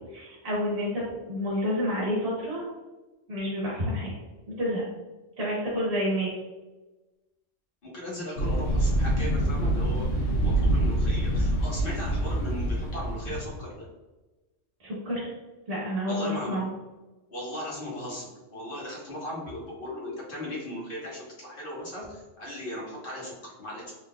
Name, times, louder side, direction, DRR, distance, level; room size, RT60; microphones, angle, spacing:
voice 1, 0.1-2.6 3.3-4.1 4.5-4.8 5.4-6.3 14.8-15.3 15.7-16.7, equal, 55° right, -6 dB, 1.4 m, -29 dB
voice 2, 7.8-13.8 16.1-16.6 17.3-23.9, left 1 dB, 50° left, -5 dB, 1.4 m, -37 dB
sound 1, 8.4-13.6, right 1 dB, 85° left, 1.2 m, -26 dB
4.2 x 3.3 x 2.2 m, 1.1 s
omnidirectional pair, 1.3 m